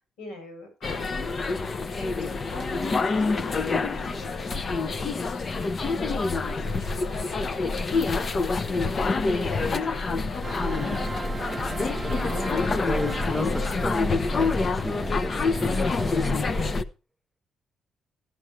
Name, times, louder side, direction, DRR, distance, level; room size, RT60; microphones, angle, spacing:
voice 1, 0.0-1.3 1.9-5.4 6.4-8.7 9.3-10.8, left 2 dB, 85° left, 7.6 m, -44 dB
sound 1, 0.8-16.8, left 3 dB, 40° left, 0.7 m, -27 dB
sound 2, 10.4-16.7, right 3 dB, 25° right, 0.7 m, -37 dB
voice 2, 12.8-16.8, equal, ahead, 0.4 m, -35 dB
12.0 x 11.0 x 3.2 m
cardioid pair, 90°, 0 cm